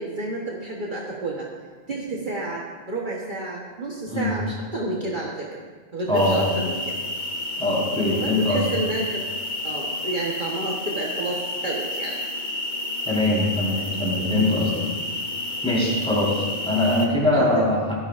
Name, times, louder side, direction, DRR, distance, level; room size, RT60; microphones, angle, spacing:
voice 1, 0.0-1.5 1.9-5.6 5.9-7.0 8.1-9.2 9.6-12.2 16.1-16.2 17.3-17.6, right 2 dB, 45° right, -3 dB, 1.4 m, -30 dB
sound 1, 6.1-17.1, left 1 dB, 45° left, 1.3 m, -30 dB
voice 2, 6.1-6.5 7.6-8.7 13.0-14.7 15.6-18.0, left 1 dB, 5° left, -6 dB, 4.2 m, -22 dB
16.5 x 13.5 x 2.5 m, 1.5 s
omnidirectional pair, 1.2 m